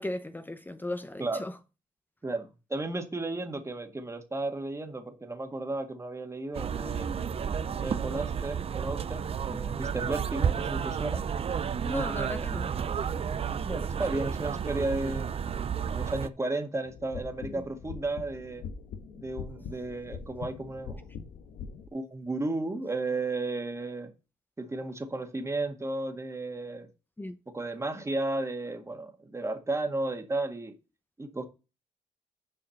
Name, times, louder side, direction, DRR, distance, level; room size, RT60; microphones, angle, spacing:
voice 1, 0.0-1.6 9.5-9.7 11.8-12.7 17.5-17.6 27.2-27.4, left 1 dB, 15° left, 0.7 m, -36 dB
voice 2, 2.2-7.1 7.7-11.2 13.6-15.3 15.9-18.6 19.2-21.1 21.9-24.1 24.6-26.9 27.5-30.7 31.2-31.5, right 2 dB, 20° right, 1.8 m, -34 dB
sound 1, 6.5-16.3, right 7 dB, 45° right, 0.5 m, -31 dB
sound 2, 16.8-21.9, left 6 dB, 90° left, 1.2 m, -42 dB
7.3 x 4.9 x 6.5 m
cardioid pair, 80°, 14 cm